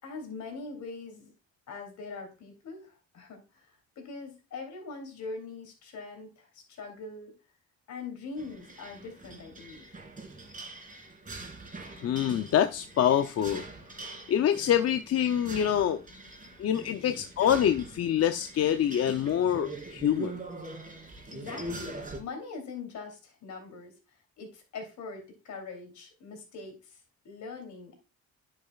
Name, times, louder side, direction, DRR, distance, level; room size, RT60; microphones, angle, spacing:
voice 1, 0.0-1.3 1.7-7.4 7.9-9.9 16.7-17.2 21.3-23.9 24.4-27.0 27.2-28.0, left 4 dB, 70° left, 3.1 m, -42 dB
sound 1, 8.4-22.2, right 2 dB, 25° right, 2.5 m, -43 dB
voice 2, 12.0-13.7 14.0-16.0 16.6-20.4, left 10 dB, 55° left, 0.6 m, -26 dB
9.8 x 6.5 x 2.3 m
cardioid pair, 90°, 30 cm